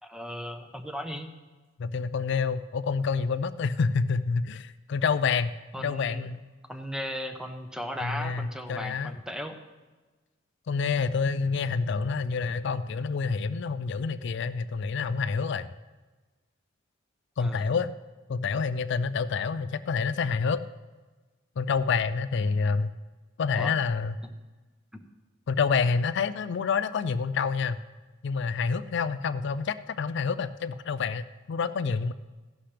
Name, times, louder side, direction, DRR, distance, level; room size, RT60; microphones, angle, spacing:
voice 1, 0.0-1.3 5.7-6.3 6.7-9.6 17.4-17.8 23.5-23.8 24.9-25.1, equal, 5° right, 6 dB, 0.9 m, -36 dB
voice 2, 1.8-5.5 5.8-6.4 8.0-9.2 10.7-15.7 17.4-17.9 18.3-20.6 21.6-22.9 23.4-24.1 25.5-27.8 28.2-32.1, left 5 dB, 65° left, 13 dB, 0.4 m, -28 dB
15.5 x 11.5 x 3.4 m, 1.3 s
head